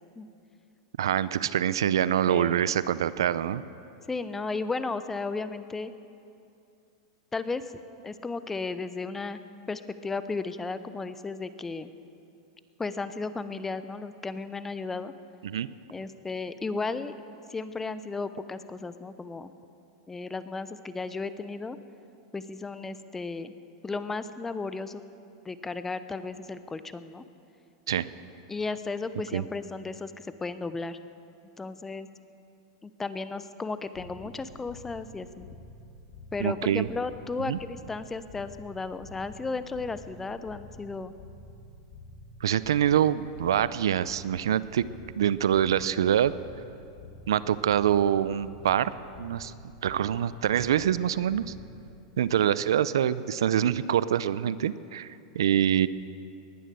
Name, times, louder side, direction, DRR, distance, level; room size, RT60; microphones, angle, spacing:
voice 1, 1.0-3.6 15.4-15.7 27.9-28.1 29.3-29.4 36.4-36.9 37.5-37.6 42.4-44.8 45.2-46.3 47.3-48.9 49.2-49.5 49.8-51.5 52.2-55.1 55.3-55.9, right 10 dB, 85° right, 17 dB, 0.5 m, -25 dB
voice 2, 2.3-2.6 4.1-5.9 7.3-7.6 8.0-9.4 9.7-11.9 12.8-15.1 15.9-17.1 17.5-19.5 20.1-21.8 22.3-23.5 23.8-25.0 25.4-27.2 28.5-31.0 31.6-32.1 32.8-35.5 36.3-41.1, left 3 dB, 15° left, 12 dB, 0.7 m, -34 dB
sound 1, 33.9-52.0, left 1 dB, 60° left, 3.7 m, -49 dB
19.0 x 11.0 x 6.8 m, 2.6 s
hypercardioid pair, 120°, 2 cm